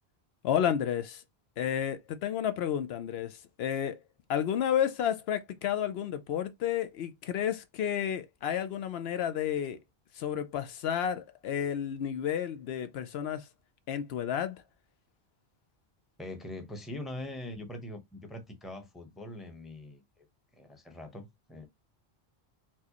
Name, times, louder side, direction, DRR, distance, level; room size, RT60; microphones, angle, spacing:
voice 1, 0.4-1.2 1.6-4.0 4.3-9.8 10.1-13.5 13.9-14.6, left 9 dB, 75° left, 0.8 m, -31 dB
voice 2, 16.2-20.0 20.5-21.7, left 1 dB, ahead, 0.6 m, -42 dB
4.5 x 2.1 x 2.9 m
omnidirectional pair, 1.1 m